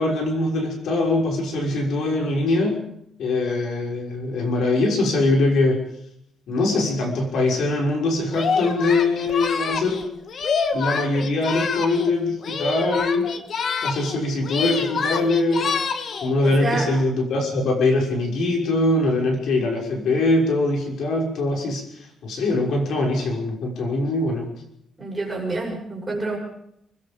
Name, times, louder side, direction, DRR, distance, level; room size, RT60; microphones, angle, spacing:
voice 1, 0.0-2.8 3.2-5.8 6.5-10.1 10.7-13.3 13.8-15.8 16.2-21.8 22.2-24.5, left 2 dB, 65° left, 1 dB, 6.0 m, -22 dB
Singing, 8.3-12.1 12.4-14.2 14.4-16.3, left 5 dB, 45° left, 1.6 m, -26 dB
voice 2, 16.4-16.9 25.0-26.4, right 3 dB, 15° right, -1 dB, 6.9 m, -27 dB
26.0 x 20.5 x 5.3 m, 0.75 s
cardioid pair, 165°, 0 cm